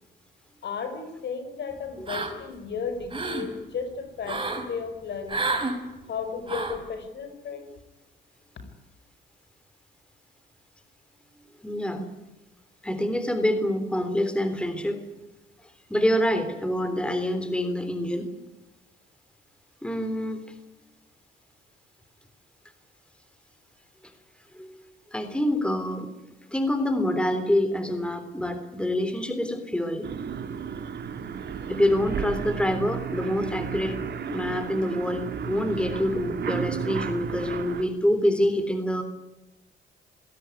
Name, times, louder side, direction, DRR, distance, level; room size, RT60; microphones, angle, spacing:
voice 1, 0.6-5.5 6.1-7.7, left 6 dB, 60° left, 8 dB, 5.3 m, -34 dB
sound 1, 2.1-2.6 2.9-3.5 4.2-4.7 5.3-5.8 6.5-6.8, right 3 dB, 25° right, 5.6 m, -29 dB
voice 2, 11.6-12.0 12.8-15.0 15.9-18.3 19.8-20.5 24.5-24.8 25.1-26.1 26.5-30.1 31.7-34.0 34.3-39.0, left 1 dB, 5° left, 8 dB, 3.4 m, -26 dB
sound 2, 30.0-37.8, right 7 dB, 60° right, 2.6 m, -33 dB
26.5 x 17.5 x 9.8 m, 1.1 s
cardioid pair, 90°, 20 cm